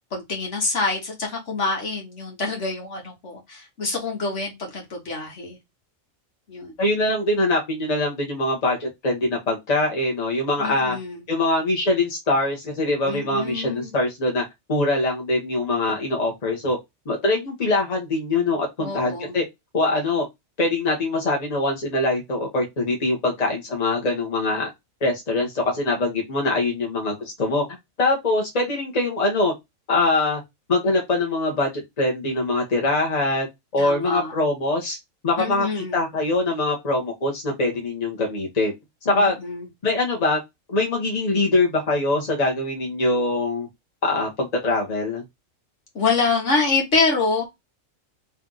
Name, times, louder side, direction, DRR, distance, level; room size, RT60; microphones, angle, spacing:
voice 1, 0.1-5.6 6.5-6.8 10.6-11.2 13.0-13.9 18.8-19.4 33.8-34.3 35.4-36.0 39.1-39.7 46.0-47.5, left 4 dB, 65° left, 1.6 m, -26 dB
voice 2, 6.8-11.0 11.3-14.4 14.7-16.8 17.0-19.4 19.7-20.2 20.6-24.7 25.0-27.6 28.0-29.5 29.9-30.4 30.7-31.7 32.0-33.5 33.7-35.0 35.2-38.7 39.0-39.3 39.8-40.4 40.7-43.7 44.0-45.2, left 2 dB, 30° left, 1.2 m, -23 dB
3.4 x 2.9 x 3.8 m
omnidirectional pair, 1.4 m